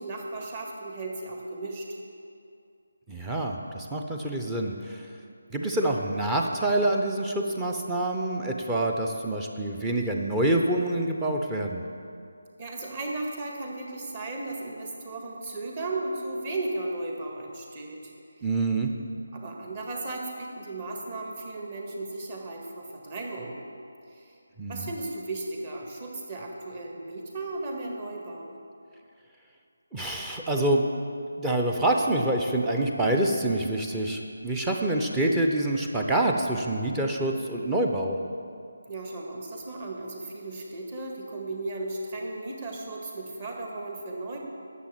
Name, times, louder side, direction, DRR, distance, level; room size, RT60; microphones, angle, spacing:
voice 1, 0.0-1.9 12.6-18.1 18.4-18.5 19.3-23.6 24.1-24.3 24.7-28.5 38.9-44.4, right 2 dB, 30° right, 0 dB, 1.8 m, -35 dB
voice 2, 3.1-5.0 5.5-11.8 18.4-18.9 24.6-24.9 29.9-30.8 31.4-38.2, right 1 dB, 10° right, 2 dB, 0.7 m, -26 dB
11.0 x 7.3 x 7.5 m, 2.5 s
figure-of-eight pair, 155°, 0 cm